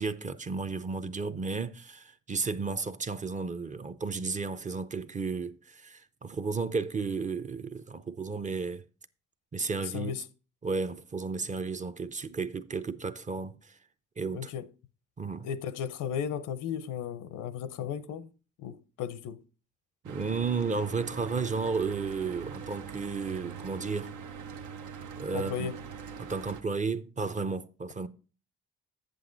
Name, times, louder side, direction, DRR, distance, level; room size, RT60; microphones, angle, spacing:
voice 1, 0.0-8.8 9.5-10.1 10.6-13.8 14.2-14.5 15.2-15.5 20.0-24.1 25.2-25.7 26.2-28.1, right 4 dB, 25° right, 0.6 m, -33 dB
voice 2, 9.8-10.3 14.3-14.7 15.4-18.3 18.6-19.4 25.3-25.8, left 8 dB, 85° left, 0.7 m, -35 dB
Mechanical fan, 20.0-26.6, right 6 dB, 80° right, 1.0 m, -42 dB
7.9 x 7.6 x 3.9 m
cardioid pair, 90°, 30 cm